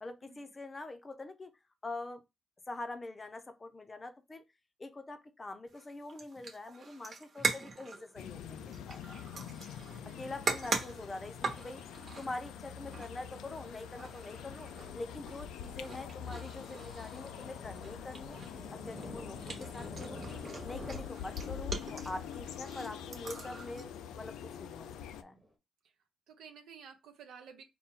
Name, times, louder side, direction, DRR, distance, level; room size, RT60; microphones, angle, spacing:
voice 1, 0.0-2.2 2.7-4.4 4.8-9.2 10.0-11.8 12.2-18.4 18.7-20.2 20.6-23.9 24.2-24.9 25.2-25.4, left 2 dB, 25° left, 0.6 m, -44 dB
sound 1, 5.7-23.8, right 4 dB, 45° right, 1.1 m, -42 dB
sound 2, 8.2-25.2, left 8 dB, 85° left, 0.3 m, -45 dB
voice 2, 10.0-10.5 25.8-25.9 26.3-27.6, right 7 dB, 80° right, 0.8 m, -53 dB
Thunder, 11.1-11.7 11.9-12.0 12.5-12.8 13.1-25.5, equal, ahead, 0.9 m, -52 dB
4.2 x 2.2 x 3.7 m
cardioid pair, 90°, 0 cm